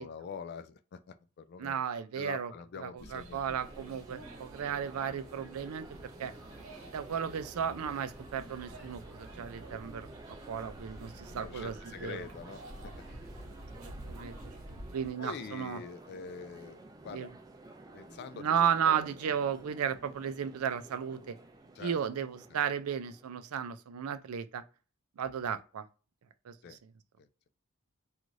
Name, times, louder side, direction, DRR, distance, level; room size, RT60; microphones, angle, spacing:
voice 1, 0.0-1.8 2.2-3.6 11.3-12.9 15.2-17.3 17.9-19.1 21.8-22.0 26.6-26.8 27.2-27.3, left 6 dB, 50° left, 0.3 m, -45 dB
voice 2, 1.6-6.3 6.9-12.3 13.5-14.4 14.7-15.8 17.1-17.3 18.3-21.4 21.8-24.6 25.2-25.9 26.5-26.9, right 8 dB, 85° right, 0.4 m, -34 dB
sound 1, 3.0-15.1, right 1 dB, 70° right, 1.2 m, -49 dB
sound 2, 3.6-23.5, right 2 dB, 15° right, 0.4 m, -52 dB
2.6 x 2.4 x 3.0 m
head